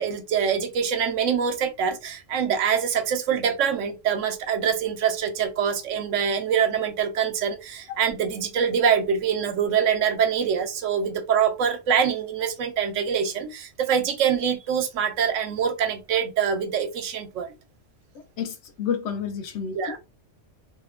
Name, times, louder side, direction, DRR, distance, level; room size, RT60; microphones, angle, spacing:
voice 1, 0.0-17.5 19.7-20.0, right 7 dB, 85° right, 0.9 m, -24 dB
voice 2, 18.1-20.0, left 7 dB, 70° left, 0.8 m, -30 dB
2.8 x 2.1 x 2.4 m
omnidirectional pair, 1.3 m